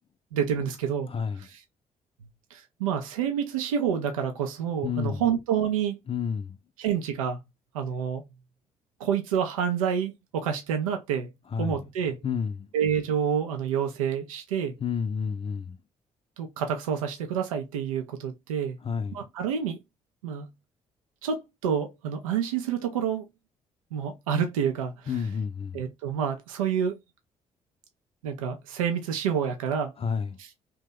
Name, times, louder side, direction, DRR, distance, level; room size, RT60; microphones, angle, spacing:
voice 1, 0.3-1.1 1.4-1.6 2.5-6.0 6.8-7.4 7.7-8.3 9.0-11.3 11.6-12.2 12.7-14.8 16.4-18.8 19.1-19.8 20.2-20.5 21.2-23.3 23.9-25.1 25.7-27.0 28.2-29.9 30.4-30.5, right 8 dB, 85° right, 0.4 m, -28 dB
voice 2, 1.1-1.5 4.8-5.2 6.1-6.6 11.5-11.8 12.2-12.7 14.8-15.8 18.8-19.2 25.1-25.8 30.0-30.4, left 6 dB, 35° left, 0.5 m, -30 dB
2.8 x 2.1 x 3.5 m
hypercardioid pair, 40°, 17 cm